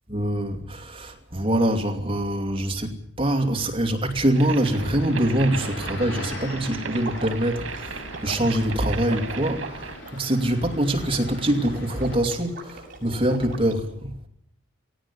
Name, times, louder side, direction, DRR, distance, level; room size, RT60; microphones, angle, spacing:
voice 1, 0.1-14.3, right 1 dB, 25° right, 2.6 m, -24 dB
sound 1, 4.3-10.0, right 4 dB, 75° right, 2.4 m, -36 dB
sound 2, 4.5-12.1, left 2 dB, 60° left, 7.4 m, -42 dB
Water / Liquid, 7.0-13.7, right 3 dB, 45° right, 6.1 m, -41 dB
18.0 x 17.5 x 9.9 m
head